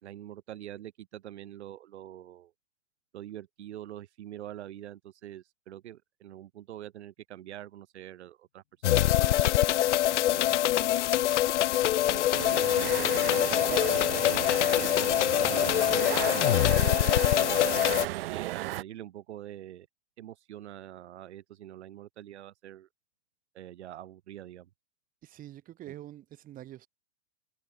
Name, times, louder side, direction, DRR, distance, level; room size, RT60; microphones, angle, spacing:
voice 1, 0.0-2.5 3.1-8.6 8.9-9.6 9.8-11.0 11.8-17.7 18.1-19.9 20.2-22.9 23.5-24.7 25.9-26.0, right 12 dB, 75° right, 1.5 m, -45 dB
sound 1, 8.8-18.1, left 14 dB, 85° left, 0.6 m, -24 dB
sound 2, 9.6-12.5, left 13 dB, 65° left, 6.3 m, -42 dB
sound 3, 12.3-18.8, right 17 dB, 55° right, 1.1 m, -34 dB
voice 2, 25.2-26.9, right 13 dB, 25° right, 1.7 m, -45 dB
hypercardioid pair, 135°, 35 cm